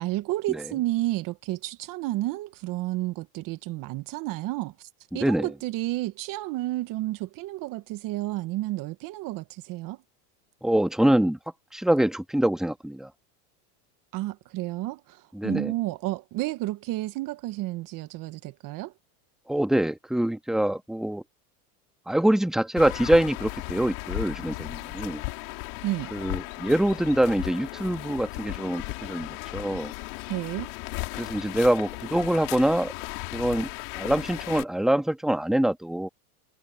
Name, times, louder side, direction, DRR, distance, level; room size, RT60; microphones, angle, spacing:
voice 1, 0.0-4.9 5.1-10.0 14.1-18.9 25.8-26.1 30.3-30.7, right 17 dB, 45° right, 1.1 m, -31 dB
voice 2, 5.1-5.5 10.6-11.4 11.7-13.1 15.3-15.7 19.5-21.2 22.1-25.2 26.1-29.9 31.1-32.9 33.3-36.1, right 1 dB, ahead, 1.5 m, -25 dB
sound 1, 22.8-34.6, left 29 dB, 65° left, 3.7 m, -36 dB
supercardioid pair, 125°, 45 cm